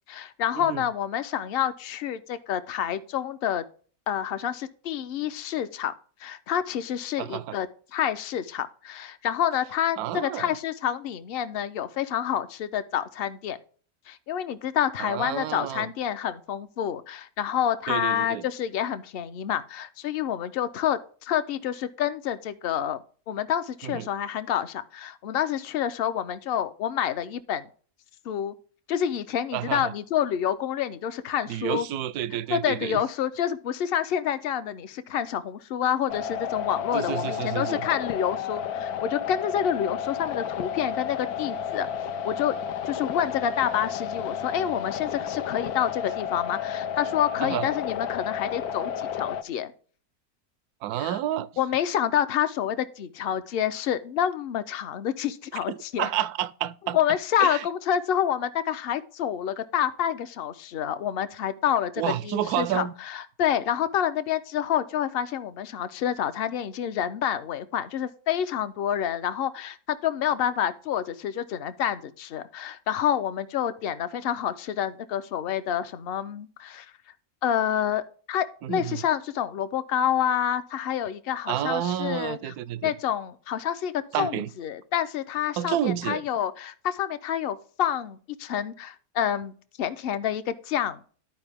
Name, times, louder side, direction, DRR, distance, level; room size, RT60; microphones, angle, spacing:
voice 1, 0.1-3.7 4.1-5.9 6.2-13.6 14.1-27.7 28.2-28.6 28.9-31.8 32.5-41.9 42.2-42.6 42.9-49.7 51.0-51.2 51.6-56.1 56.9-76.9 77.4-78.0 78.3-82.5 82.8-91.1, left 10 dB, 55° left, 0.7 m, -28 dB
voice 2, 7.2-7.6 10.0-10.5 15.0-15.9 17.9-18.4 23.8-24.1 29.5-29.9 31.5-33.0 36.9-37.8 47.4-47.7 50.8-51.5 55.7-57.0 57.4-57.6 62.0-62.9 78.6-79.0 81.5-82.9 84.1-84.5 85.6-86.2, right 11 dB, 85° right, 1.1 m, -30 dB
sound 1, 36.1-49.4, left 8 dB, 90° left, 1.2 m, -32 dB
12.0 x 4.8 x 3.4 m
omnidirectional pair, 1.6 m